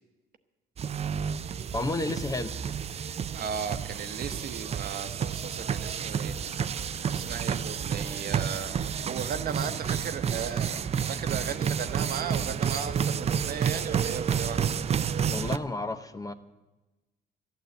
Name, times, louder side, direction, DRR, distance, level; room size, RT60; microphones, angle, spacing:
sound 1, 0.8-15.6, right 7 dB, 35° right, 0.5 m, -30 dB
voice 1, 1.7-2.5 15.3-16.3, left 2 dB, 20° left, 10 dB, 0.7 m, -31 dB
voice 2, 3.3-14.6, right 7 dB, 55° right, 10 dB, 1.0 m, -36 dB
14.0 x 9.1 x 8.0 m, 1.1 s
cardioid pair, 115°, 19 cm